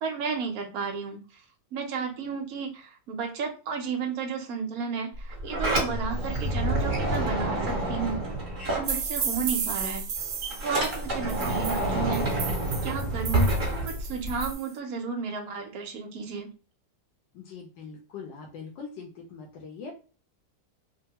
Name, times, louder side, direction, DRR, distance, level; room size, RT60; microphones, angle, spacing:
voice 1, 0.0-1.2 1.7-8.2 8.7-10.0 10.6-12.3 12.8-13.5 13.8-16.5, right 5 dB, 65° right, 4 dB, 1.0 m, -32 dB
Sliding door, 5.1-9.5 9.8-14.5, right 1 dB, 30° right, 1.1 m, -28 dB
sound 1, 8.8-14.7, right 7 dB, 85° right, 0.6 m, -34 dB
voice 2, 17.3-19.9, left 5 dB, 85° left, -1 dB, 1.3 m, -42 dB
3.4 x 2.2 x 2.8 m, 0.36 s
omnidirectional pair, 1.9 m